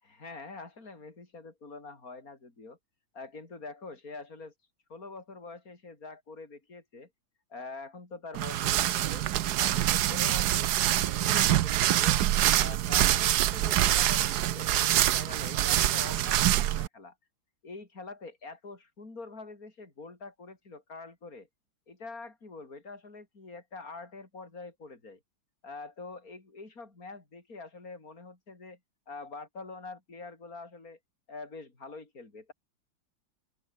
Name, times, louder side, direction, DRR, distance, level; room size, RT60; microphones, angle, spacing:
voice 1, 0.0-2.8 3.1-4.5 4.9-7.1 7.5-9.3 9.6-12.2 12.5-17.2 17.6-21.5 21.9-25.2 25.6-28.8 29.1-31.0 31.3-32.5, left 3 dB, 45° left, 5.3 m, -45 dB
sound 1, 8.3-16.9, right 13 dB, 65° right, 1.1 m, -25 dB
open air
omnidirectional pair, 2.2 m